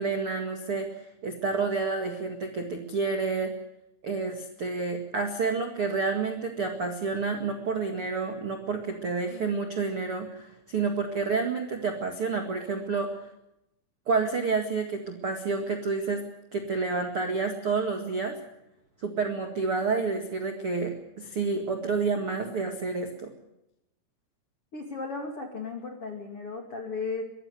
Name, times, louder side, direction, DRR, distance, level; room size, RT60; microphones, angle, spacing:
voice 1, 0.0-3.5 4.0-13.3 14.0-16.2 16.5-18.4 19.0-23.3, right 4 dB, 55° right, 4 dB, 1.5 m, -29 dB
voice 2, 24.7-27.2, left 4 dB, 40° left, 3 dB, 2.2 m, -35 dB
23.5 x 14.0 x 9.7 m, 0.85 s
omnidirectional pair, 6.0 m